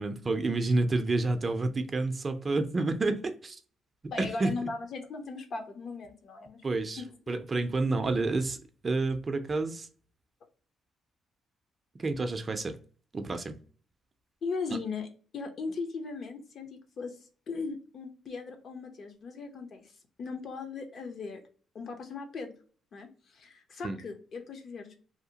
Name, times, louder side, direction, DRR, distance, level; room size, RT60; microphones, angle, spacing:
voice 1, 0.0-3.6 4.2-4.5 6.6-8.6 8.8-9.9 12.0-12.8 13.1-13.6 23.8-24.0, right 3 dB, 30° right, 8 dB, 0.4 m, -29 dB
voice 2, 4.1-6.6 7.0-7.1 14.4-15.1 15.3-16.7 17.0-17.2 17.5-19.8 20.2-21.4 21.7-22.5 22.9-24.9, left 4 dB, 55° left, 5 dB, 0.6 m, -38 dB
2.7 x 2.1 x 2.7 m, 0.41 s
cardioid pair, 90°, 0 cm